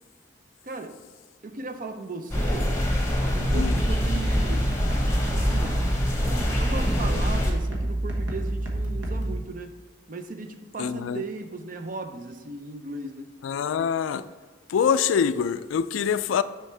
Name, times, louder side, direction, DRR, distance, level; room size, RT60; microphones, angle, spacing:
voice 1, 0.6-0.9 1.4-2.7 3.3-4.7 5.3-5.8 6.2-9.8 10.1-13.3, right 3 dB, 45° right, 7 dB, 0.5 m, -36 dB
sound 1, 2.3-7.5, left 1 dB, 15° left, 1.0 m, -25 dB
sound 2, 3.4-9.4, right 1 dB, 75° right, 1.2 m, -29 dB
voice 2, 10.8-11.2 13.4-14.2 14.7-16.4, left 7 dB, 80° left, 14 dB, 0.3 m, -24 dB
6.2 x 5.7 x 3.3 m, 1.4 s
head